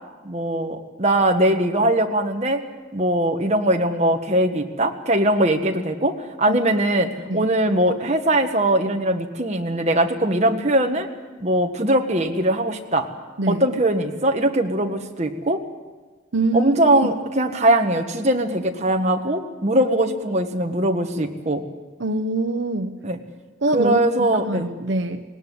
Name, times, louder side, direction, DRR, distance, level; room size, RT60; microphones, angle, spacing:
voice 1, 0.2-2.6 2.9-11.1 11.4-13.1 13.5-15.6 16.5-21.6 23.0-23.2 23.7-24.7, right 1 dB, 35° right, 4 dB, 1.5 m, -21 dB
voice 2, 16.3-16.8 17.0-17.1 22.0-23.0 23.6-25.2, right 2 dB, 75° right, 9 dB, 0.9 m, -24 dB
19.0 x 18.5 x 9.5 m, 1.3 s
head